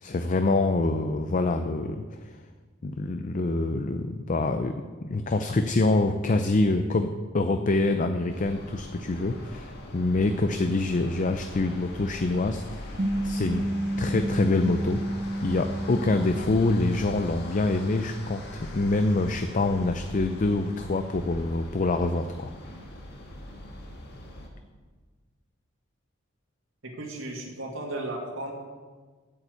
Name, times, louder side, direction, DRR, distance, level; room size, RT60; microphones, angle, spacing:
voice 1, 0.0-2.0 2.8-13.0 13.2-13.6 14.0-22.5, left 2 dB, 40° left, 7 dB, 0.5 m, -26 dB
sound 1, 8.3-24.5, left 1 dB, 55° left, 1.7 m, -42 dB
sound 2, 13.0-17.6, right 1 dB, 40° right, 0.8 m, -31 dB
voice 2, 26.8-28.5, right 1 dB, 85° right, 0 dB, 2.1 m, -35 dB
8.5 x 7.1 x 8.2 m, 1.4 s
head